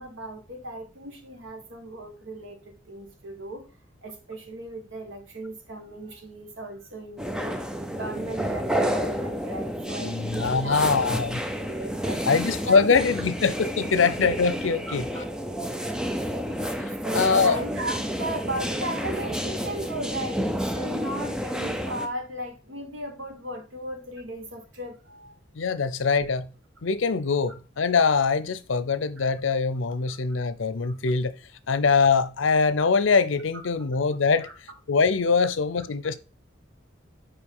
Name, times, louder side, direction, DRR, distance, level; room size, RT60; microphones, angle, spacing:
voice 1, 0.0-3.7 4.0-7.6 7.9-11.2 11.6-12.3 12.6-13.0 15.1-15.2 17.0-25.3 29.2-29.3 30.1-30.2 30.8-30.9 34.4-34.5, right 1 dB, 85° right, 1.6 m, -36 dB
sound 1, 7.2-22.1, equal, 5° right, 0.5 m, -30 dB
voice 2, 10.0-11.4 12.3-15.1 16.8-17.6 25.5-26.5 26.8-31.4 31.7-34.5 34.9-36.2, left 5 dB, 85° left, 0.6 m, -23 dB
5.1 x 5.1 x 5.5 m
head